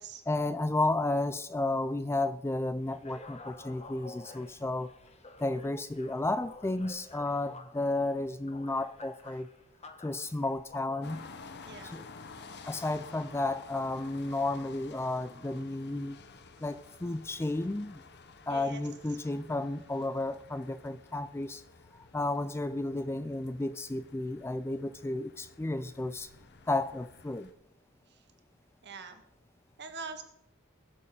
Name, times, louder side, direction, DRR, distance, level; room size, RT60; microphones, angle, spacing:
voice 1, 0.3-4.9 5.4-9.5 10.0-11.2 11.8-12.0 12.7-16.2 16.6-18.0 18.5-21.6 22.1-26.3 26.7-27.5, left 2 dB, 10° left, 0.4 m, -32 dB
sound 1, 2.8-14.6, left 2 dB, 30° left, 1.1 m, -53 dB
sound 2, 11.0-27.5, left 4 dB, 50° left, 1.0 m, -52 dB
voice 2, 11.6-12.0 18.5-18.8 28.8-29.2 29.8-30.2, right 4 dB, 55° right, 1.6 m, -43 dB
20.5 x 6.9 x 4.9 m
head